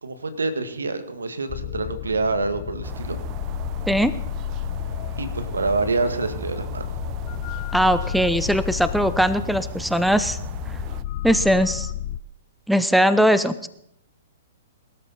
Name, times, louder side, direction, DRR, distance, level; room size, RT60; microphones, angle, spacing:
voice 1, 0.0-3.2 5.2-6.9, right 3 dB, 90° right, 10 dB, 1.9 m, -26 dB
sound 1, 1.5-12.2, left 12 dB, 40° left, 0.6 m, -32 dB
sound 2, 2.8-11.0, right 14 dB, 35° right, 0.7 m, -38 dB
voice 2, 7.7-10.4 11.2-11.9 12.7-13.7, equal, ahead, 13 dB, 0.8 m, -20 dB
22.0 x 13.0 x 4.2 m, 0.75 s
hypercardioid pair, 125°, 0 cm